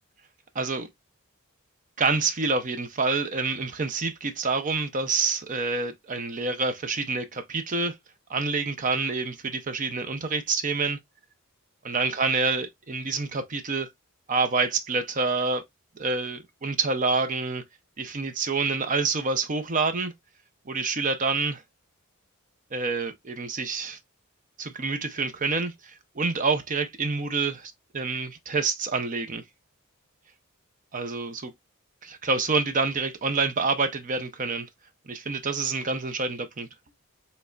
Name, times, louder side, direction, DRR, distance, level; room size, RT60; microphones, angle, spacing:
voice 1, 0.5-0.9 2.0-7.9 8.3-11.0 11.8-13.9 14.3-15.6 16.0-17.6 18.0-20.1 20.7-21.6 22.7-24.0 24.6-29.4 30.9-31.5 32.0-34.7 35.1-36.7, right 4 dB, 40° right, 0.6 m, -27 dB
5.3 x 3.3 x 2.4 m
head